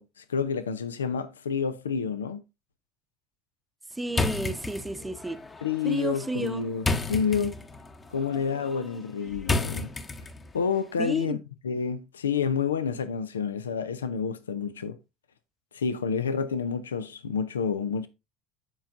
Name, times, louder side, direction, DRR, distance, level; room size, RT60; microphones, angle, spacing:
voice 1, 0.0-2.4 5.6-7.6 8.1-9.9 10.5-11.4 11.6-15.0 15.7-18.1, left 6 dB, 90° left, 0.4 m, -29 dB
voice 2, 3.9-5.4 5.8-6.7 11.0-11.4, right 2 dB, 10° right, 0.7 m, -32 dB
sound 1, 4.1-10.6, left 3 dB, 25° left, 0.9 m, -32 dB
13.5 x 4.6 x 2.5 m
hypercardioid pair, 75°, 0 cm